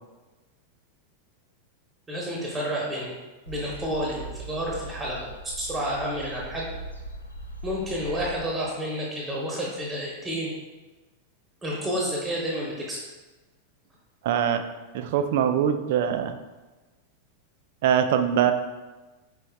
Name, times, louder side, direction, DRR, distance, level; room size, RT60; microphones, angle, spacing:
voice 1, 2.1-3.1 3.5-5.3 5.6-6.7 7.6-10.5 11.6-13.0, equal, 15° right, -3 dB, 0.9 m, -30 dB
sound 1, 3.5-8.4, right 1 dB, 85° left, 0.5 m, -40 dB
voice 2, 14.2-14.6 14.9-16.4 17.8-18.5, right 9 dB, 50° right, 8 dB, 0.3 m, -23 dB
5.0 x 4.6 x 2.3 m, 1.2 s
figure-of-eight pair, 90°, 0 cm